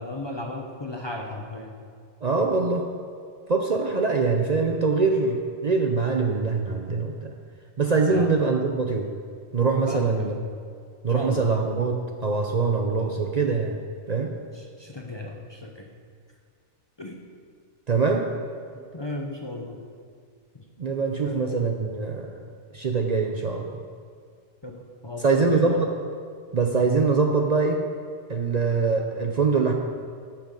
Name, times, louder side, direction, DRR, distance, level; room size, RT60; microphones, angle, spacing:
voice 1, 0.0-1.7 8.1-8.3 9.9-10.4 11.1-11.5 14.5-15.9 17.0-17.2 18.7-19.8 20.5-20.6 21.2-21.4 24.6-25.8, left 2 dB, 30° left, 1 dB, 0.7 m, -35 dB
voice 2, 2.2-2.8 3.5-7.3 7.8-9.1 9.5-10.3 11.0-13.8 14.1-14.3 17.9-18.3 20.8-22.4 22.7-23.8 25.2-25.9 26.5-27.8 28.3-29.7, right 4 dB, 45° right, 2 dB, 0.7 m, -23 dB
12.0 x 6.1 x 5.2 m, 2.1 s
omnidirectional pair, 1.2 m